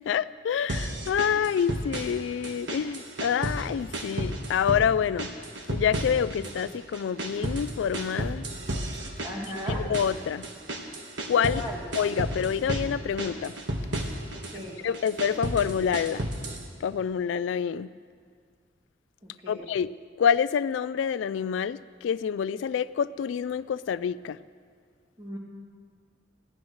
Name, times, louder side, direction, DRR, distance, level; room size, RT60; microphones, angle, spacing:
voice 1, 0.1-5.3 5.7-8.5 9.7-10.4 11.3-11.6 11.9-13.5 14.8-16.3 16.8-17.9 19.5-19.9 20.2-24.4, left 7 dB, 80° left, 17 dB, 0.3 m, -27 dB
sound 1, 0.7-2.2 2.4-3.7 3.9-4.9 5.2-6.6 6.9-11.6 11.9-12.9 13.2-14.5 14.9-16.6, right 1 dB, 75° right, 1.5 m, -32 dB
voice 2, 9.2-9.8 11.5-11.8 14.3-14.8 19.4-19.6 25.2-25.4, equal, 25° right, -3 dB, 2.3 m, -37 dB
21.0 x 15.5 x 3.2 m, 2.1 s
head